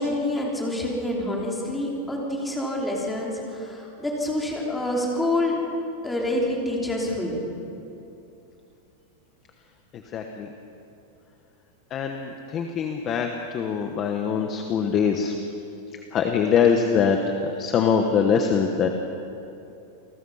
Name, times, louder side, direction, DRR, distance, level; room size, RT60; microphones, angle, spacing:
voice 1, 0.0-5.6 6.0-7.4, left 1 dB, 5° left, -3 dB, 3.3 m, -27 dB
voice 2, 10.1-10.5 11.9-13.3 13.5-15.3 16.1-17.2 17.6-18.9, left 7 dB, 25° left, 4 dB, 1.1 m, -23 dB
28.5 x 19.5 x 5.7 m, 2.8 s
supercardioid pair, 175°, 0 cm